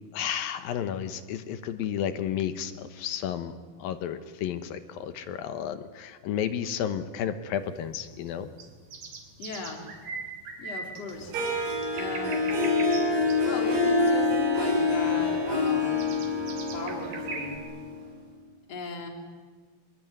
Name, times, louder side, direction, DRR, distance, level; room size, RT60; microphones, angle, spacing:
voice 1, 0.1-8.5, left 9 dB, 70° left, 11 dB, 2.6 m, -32 dB
sound 1, 7.6-17.6, right 4 dB, 55° right, 4.5 m, -41 dB
voice 2, 9.4-9.9 10.6-11.3 11.9-12.5 12.8-12.9 13.2-16.0 16.7-17.7 18.7-19.1, left 3 dB, 40° left, 3 dB, 4.3 m, -38 dB
Harp, 11.3-18.2, left 3 dB, 75° right, 7.0 m, -26 dB
24.0 x 22.0 x 9.5 m, 1.5 s
omnidirectional pair, 4.6 m